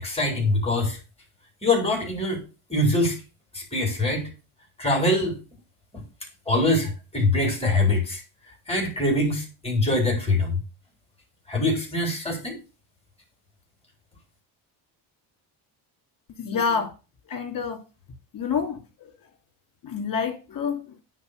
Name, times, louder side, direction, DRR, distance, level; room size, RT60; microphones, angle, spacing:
voice 1, 0.0-1.0 1.6-2.4 2.7-3.2 3.5-4.3 4.8-5.4 5.9-6.0 6.5-8.2 8.7-10.5 11.5-12.6, left 2 dB, 10° left, 3.6 m, -23 dB
voice 2, 16.4-16.9 17.3-17.8 18.3-19.1 19.8-20.9, left 6 dB, 45° left, 2.6 m, -28 dB
9.7 x 4.2 x 6.5 m
cardioid pair, 130°, 48 cm